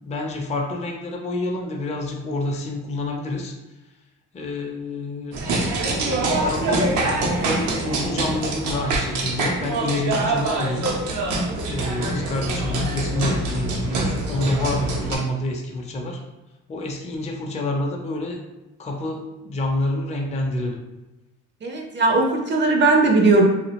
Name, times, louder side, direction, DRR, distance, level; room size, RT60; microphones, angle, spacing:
voice 1, 0.0-3.5 4.3-5.5 5.8-6.9 7.4-10.9 11.7-16.2 16.7-18.4 18.8-20.8, left 2 dB, 25° left, 1 dB, 0.4 m, -28 dB
sound 1, 5.3-15.2, right 2 dB, 85° right, 0.6 m, -24 dB
voice 2, 21.6-23.5, right 3 dB, 40° right, 1 dB, 0.4 m, -18 dB
2.3 x 2.0 x 2.8 m, 1.0 s
cardioid pair, 90°, 30 cm